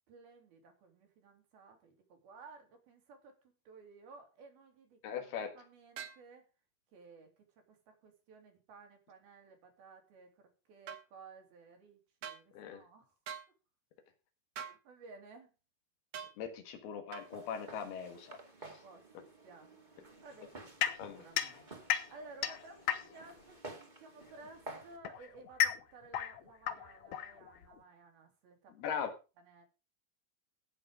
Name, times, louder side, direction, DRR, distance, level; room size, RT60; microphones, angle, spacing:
voice 1, 0.1-3.3 3.7-6.4 6.9-13.1 14.7-15.5 18.6-29.0 29.4-29.7, right 3 dB, 75° right, 3 dB, 4.7 m, -56 dB
voice 2, 5.0-5.5 12.5-12.8 16.4-18.4 21.0-21.2 28.8-29.1, left 7 dB, 85° left, 7 dB, 3.6 m, -40 dB
sound 1, 6.0-6.2 10.9-11.0 12.2-12.4 13.3-13.5 14.6-14.8 16.1-16.4 17.1-17.3, right 8 dB, 55° right, 2.4 m, -44 dB
Walk footsteps, 17.2-25.0, right 2 dB, 20° right, 1.4 m, -52 dB
sound 2, 20.8-23.4 24.4-27.8, left 10 dB, 70° left, 1.8 m, -35 dB
16.0 x 6.7 x 5.0 m, 0.31 s
omnidirectional pair, 4.4 m